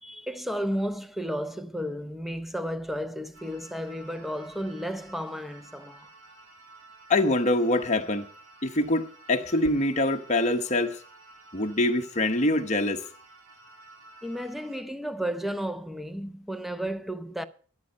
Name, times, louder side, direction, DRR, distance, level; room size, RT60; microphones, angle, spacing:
voice 1, 0.0-6.1 14.2-17.4, equal, ahead, 0.6 m, -33 dB
sound 1, 3.3-14.8, right 2 dB, 90° right, 8.0 m, -52 dB
voice 2, 7.1-8.2 8.6-11.0 11.5-13.0, left 2 dB, 30° left, 1.1 m, -24 dB
13.0 x 10.5 x 5.3 m
head